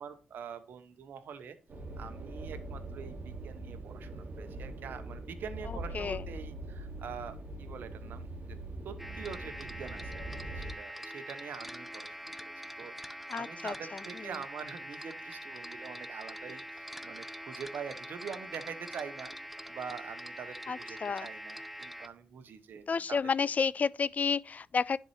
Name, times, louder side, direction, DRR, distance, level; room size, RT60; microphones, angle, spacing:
voice 1, 0.0-1.6 2.0-8.6 8.8-12.5 12.8-19.3 19.7-23.2, right 7 dB, 75° right, 0.9 m, -45 dB
sound 1, 1.7-10.7, right 1 dB, 55° right, 1.4 m, -42 dB
sound 2, 9.0-22.1, equal, 5° right, 0.5 m, -44 dB
voice 2, 13.3-13.7 20.7-21.3 22.9-25.0, left 5 dB, 50° left, 0.3 m, -30 dB
10.5 x 4.5 x 3.1 m
supercardioid pair, 45°, 3 cm